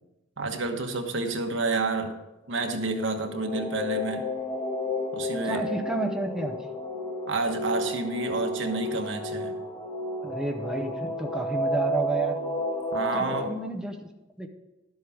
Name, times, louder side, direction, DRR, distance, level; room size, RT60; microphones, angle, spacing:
voice 1, 0.4-2.1 2.5-4.2 5.1-5.7 7.3-9.5 12.9-13.5, right 3 dB, 75° right, 4 dB, 1.3 m, -29 dB
sound 1, 2.8-13.5, left 1 dB, 30° left, 1.4 m, -31 dB
voice 2, 5.4-6.6 10.2-12.4 13.1-14.0 14.4-14.5, right 2 dB, 5° right, 3 dB, 0.7 m, -31 dB
12.0 x 7.8 x 5.0 m, 0.99 s
head